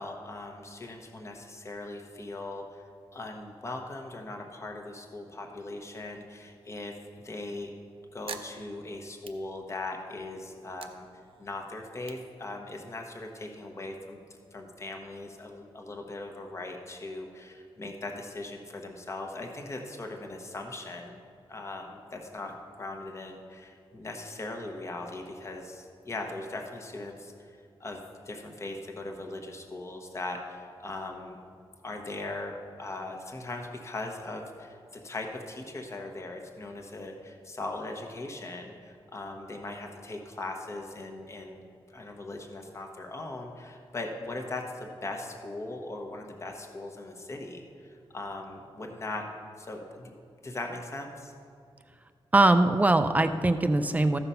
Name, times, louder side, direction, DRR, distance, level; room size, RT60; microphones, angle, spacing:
voice 1, 0.0-2.8 3.1-6.9 7.2-7.7 8.1-11.1 11.4-14.2 14.5-21.2 21.5-28.0 28.3-31.4 31.8-41.6 41.9-49.2 49.6-50.1 50.4-51.3, left 2 dB, 30° left, 2 dB, 1.1 m, -39 dB
sound 1, 8.0-10.1 10.5-13.1, right 6 dB, 70° right, 0.6 m, -48 dB
voice 2, 52.3-54.2, right 2 dB, 15° right, 9 dB, 0.4 m, -22 dB
14.0 x 5.8 x 5.6 m, 2.3 s
wide cardioid pair, 155°, 10 cm